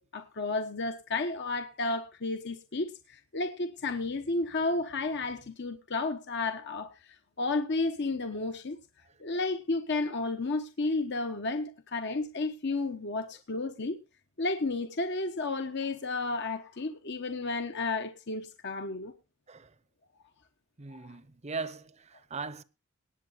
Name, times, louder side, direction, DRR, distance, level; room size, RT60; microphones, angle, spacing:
voice 1, 0.1-8.8 9.2-14.0 14.4-19.1 20.9-21.2, left 3 dB, 50° left, 1.0 m, -32 dB
voice 2, 20.8-22.6, right 4 dB, 30° right, 0.8 m, -39 dB
19.0 x 7.4 x 4.0 m
head